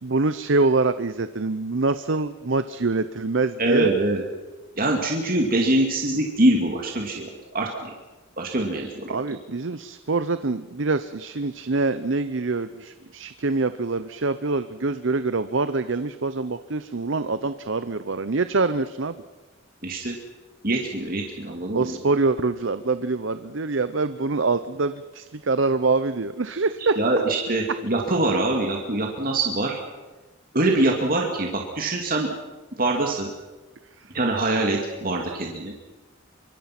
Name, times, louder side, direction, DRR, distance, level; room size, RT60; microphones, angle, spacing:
voice 1, 0.0-3.9 9.1-19.2 21.7-27.0, right 3 dB, 65° right, 12 dB, 0.7 m, -25 dB
voice 2, 3.6-4.2 4.8-7.9 8.4-9.2 19.8-20.2 20.6-22.0 27.0-29.8 30.5-32.3 32.8-33.3 34.1-35.7, right 2 dB, 45° right, 1 dB, 2.4 m, -24 dB
24.5 x 24.0 x 6.0 m, 1.2 s
head